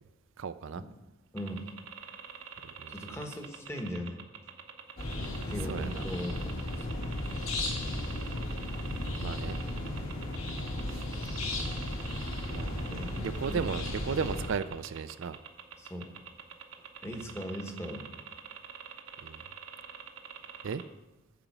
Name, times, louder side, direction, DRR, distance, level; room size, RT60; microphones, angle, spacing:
voice 1, 0.4-0.8 2.8-3.2 5.7-6.1 9.2-9.6 10.9-11.0 12.5-15.4 19.2-19.4 20.6-20.8, right 6 dB, 60° right, 11 dB, 0.4 m, -35 dB
voice 2, 1.3-1.7 2.9-4.2 5.5-6.9 9.3-9.4 12.9-13.7 15.8-16.1 17.0-18.1, equal, 10° left, 4 dB, 1.0 m, -39 dB
sound 1, 1.4-20.8, right 7 dB, 80° right, 1.1 m, -45 dB
sound 2, 5.0-14.5, left 1 dB, 75° left, 2.4 m, -35 dB
11.0 x 5.1 x 7.1 m, 1.0 s
head